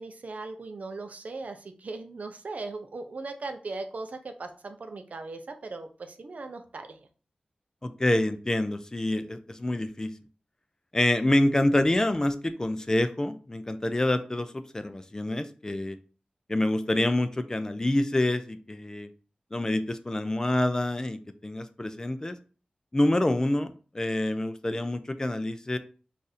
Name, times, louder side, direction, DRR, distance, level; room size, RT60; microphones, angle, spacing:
voice 1, 0.0-7.1, right 3 dB, 60° right, 6 dB, 0.5 m, -38 dB
voice 2, 7.8-10.1 10.9-16.0 16.5-19.1 19.5-22.4 22.9-25.8, left 1 dB, 25° left, 9 dB, 0.3 m, -27 dB
2.6 x 2.4 x 4.0 m, 0.38 s
wide cardioid pair, 90°, 3 cm